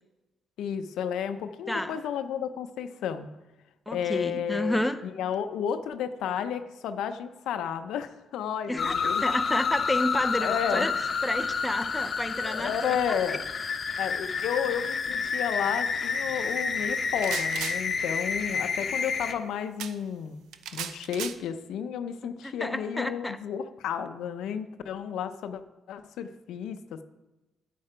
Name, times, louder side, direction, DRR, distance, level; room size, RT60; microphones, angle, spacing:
voice 1, 0.6-3.3 3.9-9.2 10.4-10.9 12.4-13.4 14.0-20.4 20.7-25.6 25.9-27.0, left 8 dB, 80° left, 9 dB, 0.6 m, -32 dB
voice 2, 1.7-2.0 3.9-5.0 8.7-12.7 13.1-13.2 22.2-23.4, left 1 dB, 5° left, 8 dB, 0.6 m, -30 dB
sound 1, 8.8-19.3, left 5 dB, 45° left, 1.0 m, -29 dB
sound 2, 17.0-17.8 19.8-19.9 20.5-21.3, right 9 dB, 85° right, 0.6 m, -35 dB
8.8 x 8.4 x 5.0 m, 1.1 s
cardioid pair, 90°, 0 cm